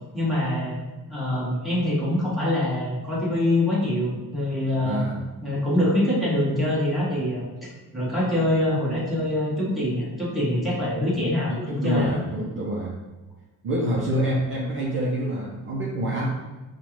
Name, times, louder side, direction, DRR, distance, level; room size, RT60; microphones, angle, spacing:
voice 1, 0.1-0.8 1.1-5.0 5.4-12.1, left 1 dB, ahead, -8 dB, 1.1 m, -24 dB
voice 2, 4.8-5.2 11.5-12.9 13.6-16.3, right 1 dB, 35° right, -5 dB, 0.6 m, -26 dB
5.4 x 2.4 x 3.0 m, 1.2 s
cardioid pair, 150°, 37 cm